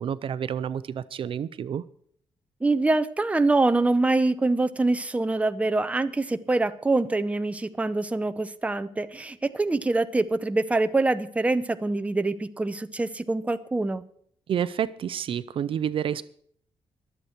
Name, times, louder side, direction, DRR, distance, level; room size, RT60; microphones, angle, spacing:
voice 1, 0.0-1.8 14.5-16.2, right 9 dB, 60° right, 15 dB, 0.6 m, -29 dB
voice 2, 2.6-14.0, right 2 dB, 10° right, 11 dB, 0.7 m, -25 dB
23.5 x 8.1 x 4.4 m, 0.63 s
cardioid pair, 125°, 11 cm